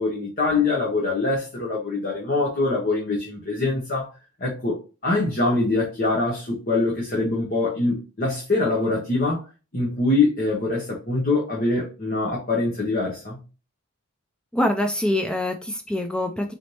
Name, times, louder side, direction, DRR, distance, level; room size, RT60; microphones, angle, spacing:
voice 1, 0.0-4.1 4.4-9.4 9.7-13.4, left 3 dB, 40° left, 1.2 m, -24 dB
voice 2, 14.5-16.5, left 1 dB, 5° left, 0.3 m, -24 dB
4.1 x 3.3 x 2.8 m
head